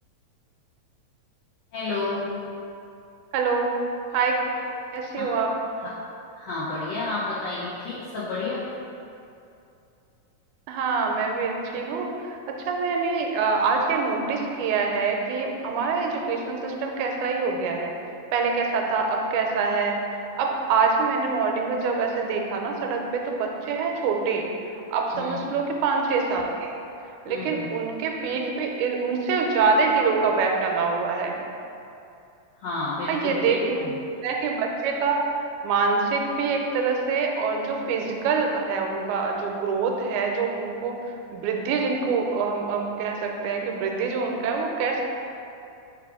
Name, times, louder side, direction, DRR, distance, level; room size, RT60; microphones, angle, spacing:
voice 1, 1.7-2.4 4.5-4.7 5.2-5.3 5.7-5.9 6.4-8.6 25.1-25.5 27.3-27.7 32.6-34.0, left 3 dB, 75° left, -10 dB, 1.3 m, -31 dB
voice 2, 3.3-3.8 4.1-4.4 4.9-5.5 10.7-12.1 12.5-17.9 18.3-20.0 20.4-24.5 24.9-26.7 27.3-31.4 33.1-33.9 34.2-35.2 35.6-41.0 41.3-45.0, right 4 dB, 90° right, 2 dB, 2.0 m, -25 dB
4.7 x 2.4 x 4.7 m, 2.6 s
omnidirectional pair, 3.4 m